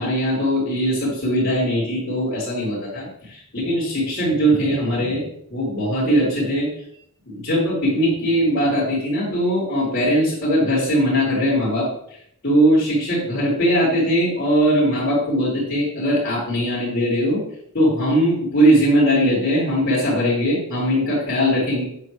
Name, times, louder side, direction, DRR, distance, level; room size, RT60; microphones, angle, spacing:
voice 1, 0.0-5.2 5.5-6.7 7.3-11.9 12.4-17.4 17.7-21.8, equal, 50° left, -10 dB, 4.0 m, -20 dB
8.5 x 8.2 x 3.3 m, 0.68 s
head